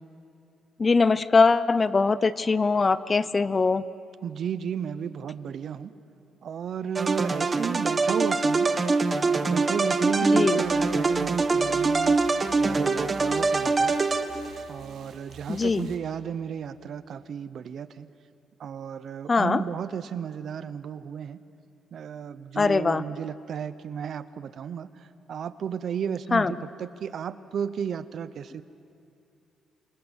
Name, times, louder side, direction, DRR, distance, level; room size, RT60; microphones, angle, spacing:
voice 1, 0.8-3.8 10.2-10.6 15.5-15.9 19.3-19.6 22.6-23.0 26.3-26.5, left 4 dB, 30° left, 17 dB, 0.7 m, -22 dB
voice 2, 4.2-5.9 6.4-8.7 9.2-12.2 12.6-14.0 14.7-18.1 18.6-21.4 21.9-28.6, right 8 dB, 60° right, 14 dB, 0.9 m, -33 dB
sound 1, 6.9-14.7, right 3 dB, 30° right, 1.3 m, -24 dB
sound 2, 10.6-16.0, right 6 dB, 80° right, 3.3 m, -49 dB
28.0 x 26.0 x 6.4 m, 2.6 s
cardioid pair, 90°, 0 cm